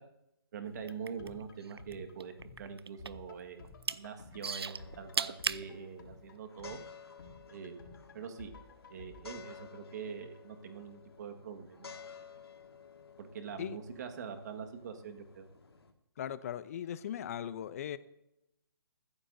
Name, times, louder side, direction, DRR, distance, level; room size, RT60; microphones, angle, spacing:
voice 1, 0.5-2.3 2.6-6.8 7.5-7.8 8.1-8.5 8.9-12.1 13.2-15.5, right 6 dB, 45° right, 1.7 m, -44 dB
sound 1, 0.7-10.7 11.0-11.1, left 3 dB, 60° left, 3.9 m, -55 dB
sound 2, 0.8-1.9 2.2-3.3 3.6-4.0 4.4-5.6 6.4-6.5, right 5 dB, 85° right, 0.6 m, -35 dB
sound 3, 4.7-15.9, left 6 dB, 85° left, 1.9 m, -54 dB
voice 2, 16.2-18.0, left 10 dB, 40° left, 0.7 m, -38 dB
21.5 x 14.5 x 2.7 m
hypercardioid pair, 150°, 13 cm